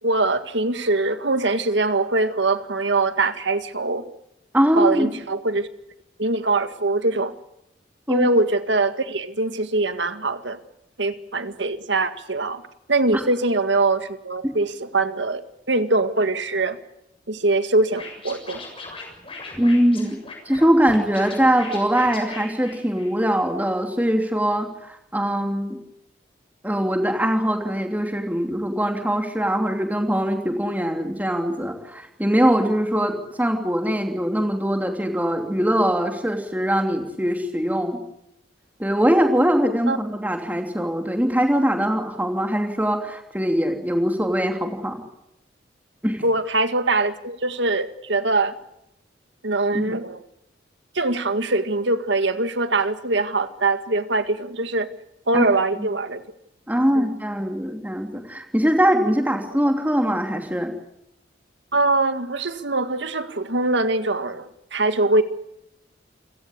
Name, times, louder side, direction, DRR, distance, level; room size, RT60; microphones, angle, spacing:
voice 1, 0.0-4.0 4.8-5.7 6.2-7.3 8.1-10.6 11.0-12.6 12.9-16.8 17.3-18.6 39.9-40.0 46.2-48.5 49.4-50.2 50.9-54.9 55.3-56.2 57.0-57.1 61.7-65.2, right 2 dB, 75° right, 10 dB, 1.9 m, -22 dB
voice 2, 4.5-5.1 8.1-8.3 19.6-20.2 20.4-25.8 26.6-38.0 38.8-45.0 46.0-46.2 49.7-49.8 55.3-55.4 55.8-55.9 56.7-60.7, equal, 10° right, 4 dB, 2.9 m, -22 dB
Scratching (performance technique), 17.9-23.4, left 3 dB, 30° left, 7.3 m, -39 dB
29.0 x 17.5 x 8.4 m, 0.84 s
head